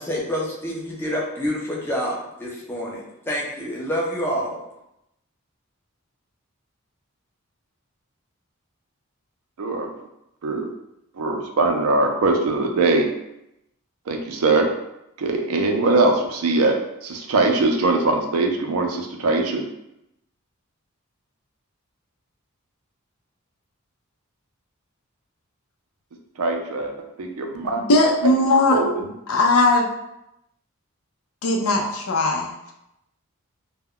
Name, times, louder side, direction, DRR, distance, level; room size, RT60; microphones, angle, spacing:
voice 1, 0.0-4.6, equal, 10° left, -3 dB, 0.5 m, -27 dB
voice 2, 9.6-9.9 10.4-10.7 11.2-13.1 14.1-14.7 15.2-19.6 26.4-27.8 28.7-29.1, right 2 dB, 80° right, 3 dB, 0.5 m, -21 dB
voice 3, 27.8-28.8 29.3-29.9 31.4-32.7, left 2 dB, 75° left, 1 dB, 0.5 m, -19 dB
2.2 x 2.1 x 3.6 m, 0.85 s
head